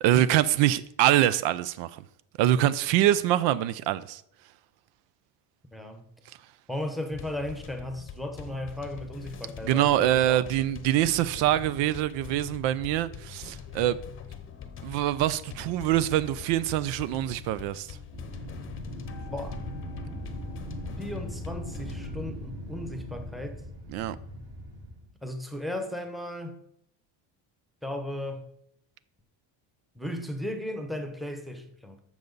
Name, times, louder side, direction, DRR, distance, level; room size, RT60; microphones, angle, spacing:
voice 1, 0.0-2.0 2.4-4.2 9.6-14.0 14.8-18.0 23.9-24.2, right 13 dB, 80° right, 0.6 m, -24 dB
voice 2, 5.7-6.1 6.7-10.5 19.3-19.6 21.0-23.6 25.2-26.6 27.8-28.5 29.9-32.0, left 1 dB, ahead, 0.9 m, -35 dB
sound 1, 7.1-22.1, left 7 dB, 30° left, 0.8 m, -43 dB
Wind, 18.1-25.1, equal, 55° right, 3.7 m, -39 dB
12.0 x 7.0 x 4.0 m
cardioid pair, 165°, 43 cm